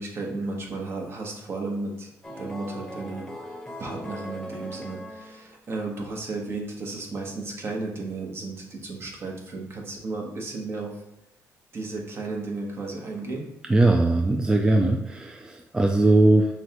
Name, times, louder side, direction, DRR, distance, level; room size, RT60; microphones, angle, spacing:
voice 1, 0.0-3.2 3.8-10.9 11.7-13.5, right 3 dB, 45° right, 0 dB, 1.1 m, -34 dB
sound 1, 2.2-5.7, equal, 5° left, 0.9 m, -39 dB
voice 2, 13.7-16.5, right 2 dB, 15° right, 2 dB, 0.3 m, -20 dB
6.1 x 2.2 x 2.9 m, 0.94 s
cardioid pair, 90°, 6 cm